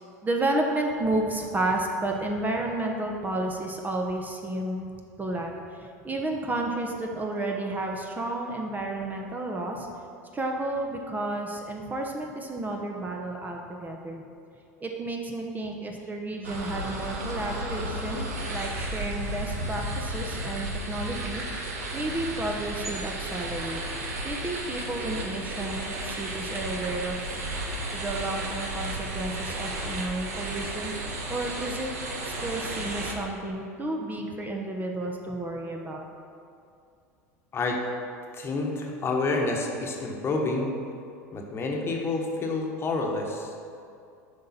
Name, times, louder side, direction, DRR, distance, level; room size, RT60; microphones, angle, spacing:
voice 1, 0.2-4.9 5.2-9.9 10.3-14.2 14.8-21.6 21.9-23.8 24.2-27.3 27.9-30.9 31.3-31.9 32.3-36.0, right 2 dB, 20° right, 1 dB, 0.9 m, -31 dB
sound 1, 16.4-33.1, right 1 dB, 75° right, 1.2 m, -33 dB
voice 2, 38.3-40.7 41.3-43.5, left 3 dB, 30° left, 0 dB, 1.2 m, -28 dB
7.7 x 5.4 x 4.3 m, 2.5 s
hypercardioid pair, 80°, 8 cm